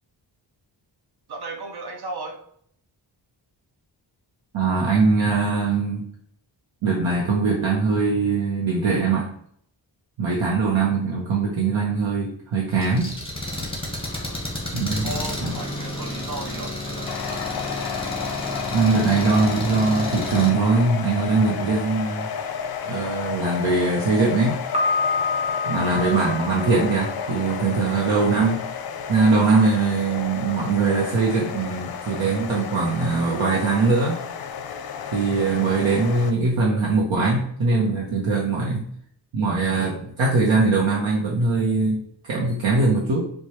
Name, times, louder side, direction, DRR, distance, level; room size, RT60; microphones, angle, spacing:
voice 1, 1.3-2.4 14.2-14.4 14.9-17.4, right 3 dB, 55° right, 2 dB, 0.8 m, -35 dB
voice 2, 4.5-6.0 6.8-9.3 10.2-13.1 14.7-15.1 15.4-15.5 18.7-22.3 22.8-24.6 25.7-28.6 29.1-34.2 35.1-38.9 39.3-43.3, right 4 dB, 85° right, -4 dB, 0.8 m, -21 dB
Engine, 12.7-20.5, left 1 dB, 10° left, 1.1 m, -31 dB
sound 1, 17.1-36.3, left 7 dB, 55° left, 0.5 m, -32 dB
Piano, 24.7-27.6, left 4 dB, 15° right, 0.7 m, -27 dB
4.5 x 2.3 x 3.0 m, 0.64 s
cardioid pair, 70°, 45 cm